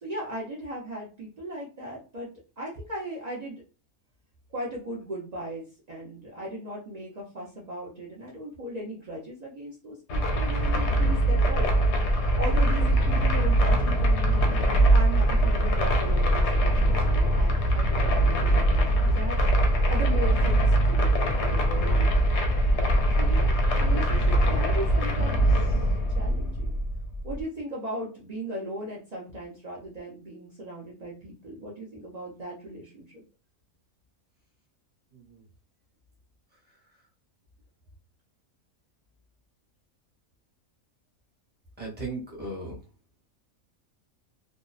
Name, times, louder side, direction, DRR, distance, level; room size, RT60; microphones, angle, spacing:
voice 1, 0.0-2.3 2.6-3.6 4.5-11.7 12.4-19.4 19.9-22.1 23.2-25.9 26.1-26.8 27.2-33.2, right 1 dB, 70° right, -5 dB, 0.3 m, -37 dB
sound 1, 10.1-27.4, right 1 dB, 65° left, 0.7 m, -22 dB
voice 2, 35.1-35.5 36.5-37.1 41.8-42.9, right 2 dB, 10° right, -3 dB, 0.5 m, -38 dB
2.6 x 2.1 x 2.3 m, 0.34 s
omnidirectional pair, 1.5 m